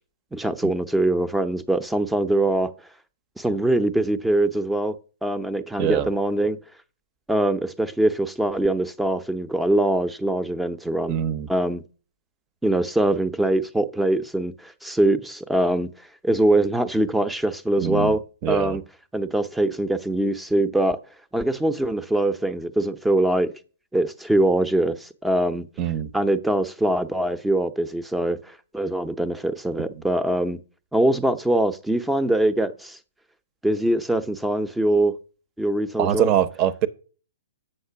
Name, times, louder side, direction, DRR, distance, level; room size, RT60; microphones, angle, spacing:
voice 1, 0.3-2.7 3.4-6.6 7.3-11.2 11.5-11.8 12.6-15.9 16.2-18.8 19.1-21.0 21.3-23.5 23.9-25.7 26.1-30.6 30.9-33.0 33.6-35.2 35.6-36.3, right 1 dB, 5° right, 0.7 m, -23 dB
voice 2, 5.8-6.1 11.1-11.5 17.8-18.2 18.4-18.8 25.8-26.1 36.0-36.9, right 10 dB, 35° right, 0.8 m, -23 dB
7.8 x 6.6 x 5.8 m
hypercardioid pair, 130°, 0 cm